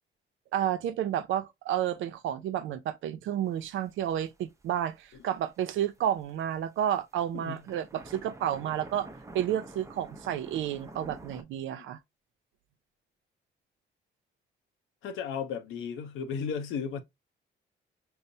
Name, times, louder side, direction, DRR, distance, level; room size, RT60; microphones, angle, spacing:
voice 1, 0.5-9.1 9.3-12.0, right 10 dB, 75° right, 0.5 m, -31 dB
sound 1, 3.5-4.7 5.0-6.6 6.9-7.0 7.3-11.4, right 2 dB, 15° right, 0.6 m, -48 dB
voice 2, 15.0-17.0, left 6 dB, 85° left, 0.6 m, -34 dB
5.4 x 2.0 x 2.6 m
cardioid pair, 90°, 20 cm